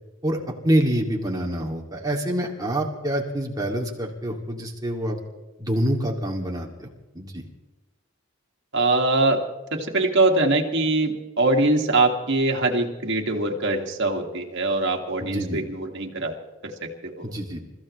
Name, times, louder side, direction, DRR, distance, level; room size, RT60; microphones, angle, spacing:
voice 1, 0.6-5.2 5.6-6.9 7.1-7.4 15.2-15.6 17.2-17.6, right 1 dB, 20° right, 0 dB, 2.5 m, -26 dB
voice 2, 8.7-9.4 9.7-16.3 16.6-17.3, right 2 dB, 55° right, 1 dB, 2.3 m, -23 dB
29.0 x 15.5 x 3.2 m, 1.1 s
head